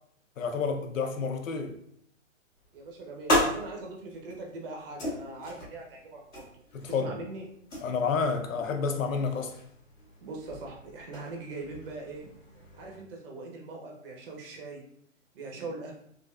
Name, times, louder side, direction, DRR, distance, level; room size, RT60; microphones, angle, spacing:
voice 1, 0.4-1.8 6.7-7.1 7.8-9.6, left 5 dB, 80° left, 0.6 m, -29 dB
sound 1, 2.6-13.0, left 1 dB, 10° left, 0.5 m, -36 dB
voice 2, 2.7-6.5 6.9-7.4 10.2-12.3 12.7-14.8 15.3-15.9, right 3 dB, 45° right, 0.7 m, -41 dB
3.1 x 2.5 x 2.3 m
hypercardioid pair, 140°, 39 cm